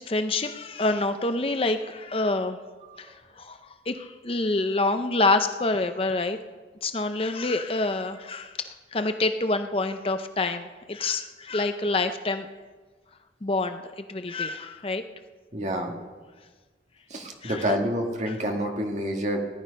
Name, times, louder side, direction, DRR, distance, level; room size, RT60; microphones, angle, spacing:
voice 1, 0.0-2.6 3.0-6.4 6.8-12.5 13.4-15.0 17.4-17.7, left 2 dB, 30° left, 8 dB, 0.6 m, -27 dB
voice 2, 15.5-15.9 17.1-19.4, equal, 40° right, 2 dB, 1.8 m, -28 dB
18.0 x 11.0 x 5.2 m, 1.3 s
head